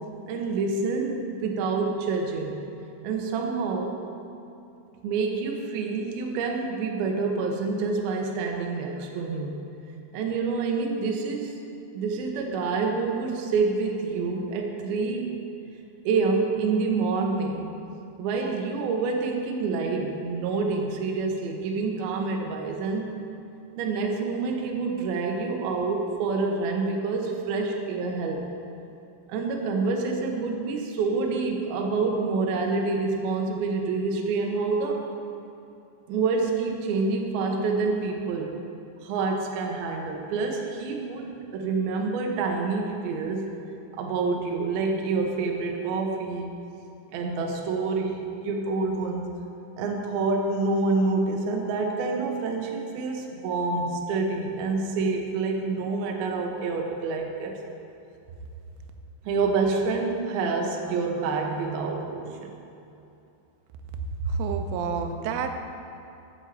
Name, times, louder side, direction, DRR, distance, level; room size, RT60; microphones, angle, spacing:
voice 1, 0.3-2.6 3.0-4.0 5.0-9.6 10.1-11.5 11.9-15.3 16.1-17.7 18.2-23.1 23.8-28.4 29.3-35.0 36.1-38.5 39.0-43.5 44.0-46.5 47.1-49.3 49.8-57.6 59.3-62.5, right 4 dB, 75° right, 1 dB, 2.4 m, -27 dB
voice 2, 64.2-65.5, right 5 dB, 90° right, 6 dB, 3.2 m, -28 dB
8.0 x 7.1 x 7.5 m, 2.7 s
omnidirectional pair, 5.4 m